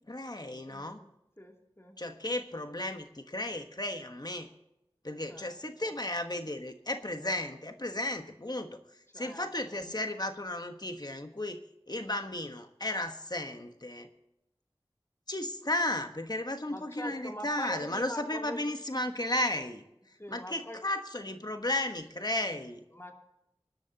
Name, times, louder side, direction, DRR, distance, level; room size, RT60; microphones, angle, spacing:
voice 1, 0.1-1.0 2.0-4.5 5.0-11.6 11.9-14.1 15.3-22.8, left 1 dB, 45° left, 6 dB, 1.2 m, -34 dB
voice 2, 0.7-1.1 1.4-1.9 5.3-5.5 5.8-5.9 9.1-9.4 9.7-9.8 16.7-18.7 20.2-20.8 22.9-23.1, equal, 25° left, 2 dB, 2.9 m, -43 dB
26.0 x 11.5 x 2.9 m, 0.87 s
wide cardioid pair, 45°, 10 cm